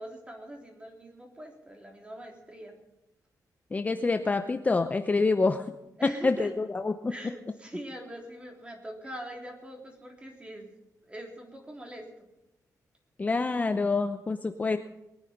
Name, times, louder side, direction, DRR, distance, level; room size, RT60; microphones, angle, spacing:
voice 1, 0.0-2.8 6.0-6.5 7.1-10.7 11.0-12.1, right 1 dB, 15° right, 1 dB, 3.6 m, -43 dB
voice 2, 3.7-5.6 6.0-7.1 13.2-14.8, left 3 dB, 25° left, 7 dB, 0.7 m, -27 dB
22.0 x 9.9 x 5.2 m, 0.91 s
wide cardioid pair, 130°, 7 cm